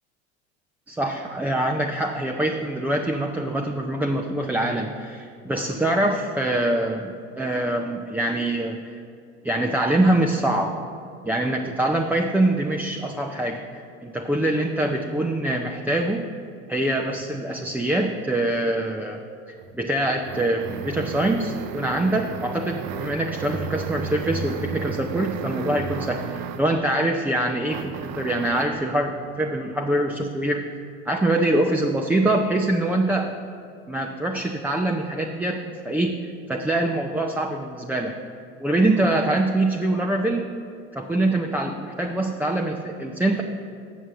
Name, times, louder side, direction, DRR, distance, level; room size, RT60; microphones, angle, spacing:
voice 1, 0.9-8.8 9.4-10.8 11.2-16.2 16.7-19.2 19.5-30.7 31.1-33.3 33.9-36.2 36.5-38.2 38.6-40.5 40.9-43.4, right 1 dB, 5° right, 2 dB, 0.4 m, -24 dB
sound 1, 19.6-26.8 27.7-28.8, right 6 dB, 60° right, 0.6 m, -33 dB
7.5 x 6.2 x 7.0 m, 2.5 s
supercardioid pair, 100°, 33 cm